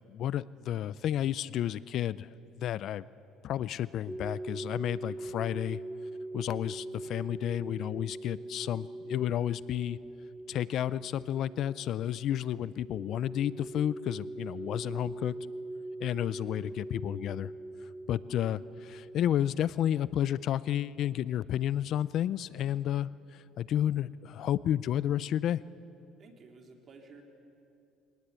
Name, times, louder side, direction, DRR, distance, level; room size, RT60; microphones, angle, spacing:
voice 1, 0.0-2.3 2.6-3.1 3.4-5.8 6.3-10.0 10.5-15.3 16.0-17.5 17.8-25.6, left 11 dB, 60° left, 19 dB, 0.4 m, -31 dB
sound 1, 4.1-19.2, right 2 dB, ahead, 0.4 m, -42 dB
voice 2, 26.2-27.2, right 4 dB, 40° right, 3 dB, 3.1 m, -53 dB
23.0 x 18.5 x 8.3 m, 2.7 s
cardioid pair, 110°, 0 cm